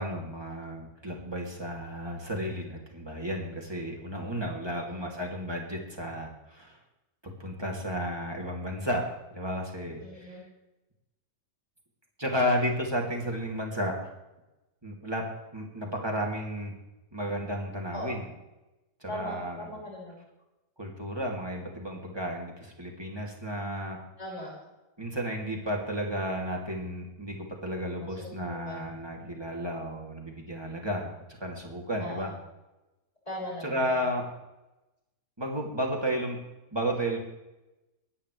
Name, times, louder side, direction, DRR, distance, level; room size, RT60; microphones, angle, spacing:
voice 1, 0.0-6.8 7.2-9.0 9.3-10.4 12.2-14.1 14.8-15.2 15.5-16.7 17.1-18.3 19.0-19.8 20.8-24.0 25.0-31.1 31.4-32.3 33.6-34.2 35.4-36.4 36.7-37.2, equal, 15° right, -1 dB, 3.0 m, -33 dB
voice 2, 4.7-5.1 10.0-10.4 17.9-18.2 19.1-20.2 24.2-24.5 28.0-29.0 32.0-32.3 33.3-34.1, left 1 dB, 20° left, -5 dB, 6.4 m, -40 dB
25.0 x 10.0 x 3.4 m, 0.99 s
omnidirectional pair, 1.9 m